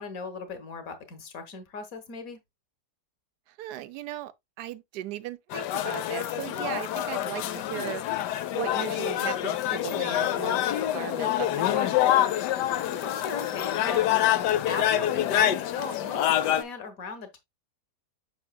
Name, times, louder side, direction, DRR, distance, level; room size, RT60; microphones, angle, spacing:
voice 1, 0.0-2.4 12.6-14.4 14.7-17.4, left 4 dB, 60° left, 1.6 m, -38 dB
voice 2, 3.5-4.3 4.6-8.0 8.5-12.0, right 13 dB, 75° right, 1.2 m, -37 dB
sound 1, 5.5-16.6, left 12 dB, 85° left, 1.2 m, -26 dB
7.9 x 5.9 x 2.2 m
omnidirectional pair, 1.8 m